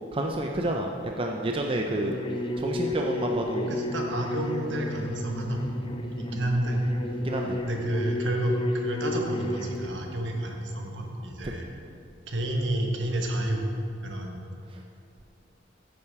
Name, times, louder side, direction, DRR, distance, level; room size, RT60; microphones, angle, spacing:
voice 1, 0.1-0.9 1.2-2.1 2.6-3.7 6.2-6.4 7.2-7.6, right 1 dB, 30° right, 1 dB, 0.5 m, -29 dB
sound 1, 1.9-9.9, left 1 dB, 25° left, 0.7 m, -32 dB
voice 2, 3.7-5.6 6.2-6.8 7.6-11.7 12.3-13.6 14.0-14.4, right 1 dB, 75° right, 1 dB, 1.4 m, -30 dB
9.4 x 8.6 x 4.8 m, 2.6 s
head